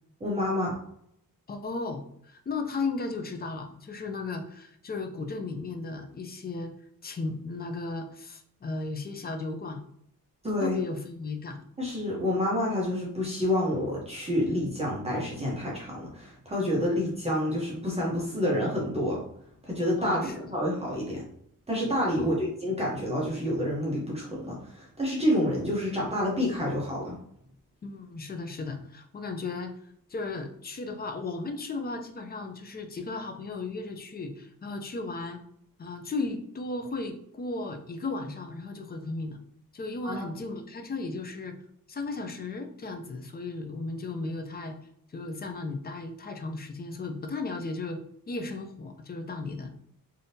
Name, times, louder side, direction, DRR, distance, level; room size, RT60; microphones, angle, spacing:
voice 1, 0.2-0.8 10.4-10.8 11.8-19.2 19.6-21.2 21.7-27.2 40.0-40.3, left 1 dB, 20° right, -5 dB, 0.7 m, -28 dB
voice 2, 1.5-6.7 7.0-9.8 10.6-11.6 20.0-20.4 22.2-22.4 27.8-29.7 30.1-35.4 35.8-39.4 39.7-41.6 41.9-44.8 45.1-48.0 48.3-49.7, left 3 dB, 30° left, 5 dB, 0.4 m, -35 dB
3.5 x 2.7 x 2.7 m, 0.71 s
wide cardioid pair, 165°, 35 cm